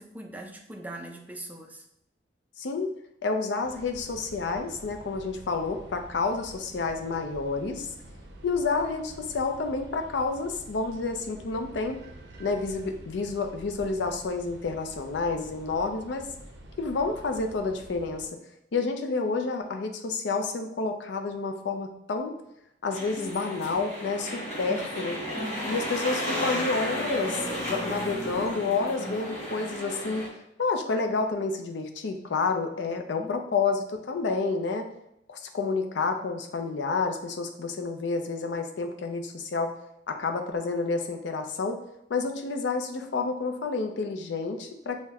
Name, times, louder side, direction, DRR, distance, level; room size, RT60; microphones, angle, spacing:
voice 1, 0.0-1.8 25.3-26.0 32.9-33.3, right 1 dB, 10° right, 2 dB, 0.3 m, -41 dB
voice 2, 2.6-2.9 3.2-7.9 8.4-12.0 12.4-16.3 16.8-18.3 18.7-22.3 22.8-25.2 25.6-27.4 27.7-30.3 30.6-34.9 35.3-39.7 40.1-41.8 42.1-45.0, left 4 dB, 75° left, 5 dB, 0.4 m, -29 dB
sound 1, 3.6-18.3, right 1 dB, 65° right, 0.5 m, -48 dB
sound 2, 22.9-30.3, equal, 35° left, 1.1 m, -33 dB
5.6 x 2.1 x 2.3 m, 0.80 s
head